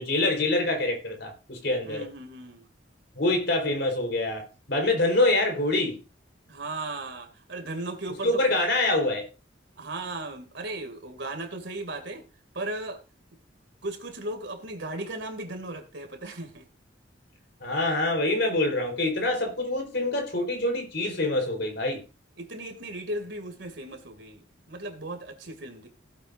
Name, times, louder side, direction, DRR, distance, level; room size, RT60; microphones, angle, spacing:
voice 1, 0.0-2.1 3.2-6.0 8.2-9.3 17.6-22.0, left 2 dB, 60° left, 4.4 m, -25 dB
voice 2, 1.8-2.7 6.5-8.4 9.8-12.2 12.5-13.0 13.8-16.6 22.4-25.9, right 2 dB, 65° right, 2.7 m, -36 dB
16.5 x 8.7 x 2.7 m
head